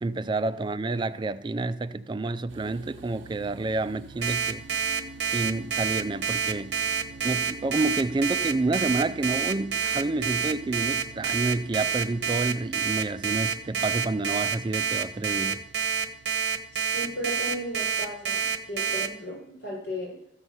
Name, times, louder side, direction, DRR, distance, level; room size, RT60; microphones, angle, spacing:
voice 1, 0.0-4.6 5.2-6.7 7.2-15.6, right 2 dB, 25° right, 0.4 m, -29 dB
sound 1, 2.5-19.2, right 4 dB, 80° right, 0.6 m, -47 dB
Alarm, 4.2-19.1, right 7 dB, 65° right, 1.1 m, -27 dB
voice 2, 16.7-20.2, equal, 60° left, 6.0 m, -35 dB
14.0 x 5.6 x 7.9 m
head